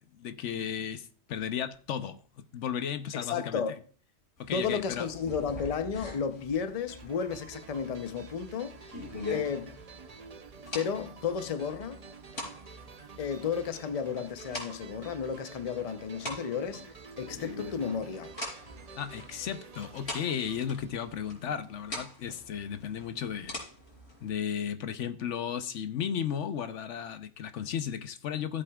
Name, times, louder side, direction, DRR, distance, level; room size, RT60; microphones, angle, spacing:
voice 1, 0.1-3.6 4.4-5.1 19.0-23.6 24.2-28.6, left 8 dB, 90° left, 1.1 m, -34 dB
voice 2, 3.2-3.8 4.5-8.9 9.3-9.8 10.7-12.0 13.2-18.3, left 6 dB, 40° left, 0.7 m, -33 dB
sound 1, 4.4-24.3, left 2 dB, 65° left, 4.4 m, -44 dB
sound 2, 6.9-21.7, right 5 dB, 40° right, 0.7 m, -50 dB
15.0 x 7.9 x 2.3 m
omnidirectional pair, 1.2 m